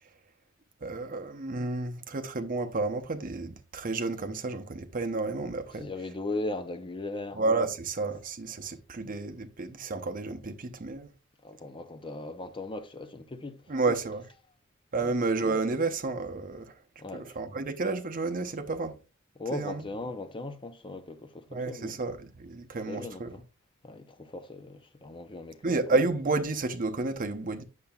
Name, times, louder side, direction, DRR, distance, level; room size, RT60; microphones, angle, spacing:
voice 1, 0.8-5.9 7.3-11.1 13.7-14.3 14.9-16.7 17.1-19.0 19.5-19.8 21.5-23.4 25.6-27.6, right 3 dB, 40° right, 0.7 m, -31 dB
voice 2, 5.7-7.4 11.4-13.6 15.0-15.2 17.0-17.3 19.4-22.0 22.9-23.2 23.8-25.8, left 2 dB, 25° left, 0.6 m, -38 dB
8.6 x 6.7 x 2.3 m
head